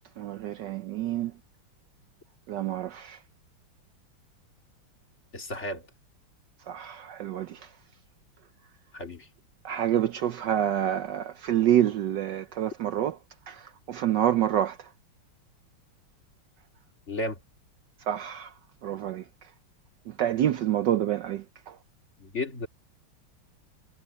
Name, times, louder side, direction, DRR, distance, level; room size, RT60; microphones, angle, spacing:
voice 1, 0.2-1.3 2.5-3.2 6.7-7.6 9.6-13.2 13.5-14.8 18.1-18.5 18.8-19.2 20.1-21.8, right 11 dB, 65° right, 1.2 m, -27 dB
voice 2, 5.3-5.8 8.9-9.3 17.1-17.4 22.2-22.7, left 1 dB, 35° left, 2.6 m, -33 dB
omnidirectional pair, 2.3 m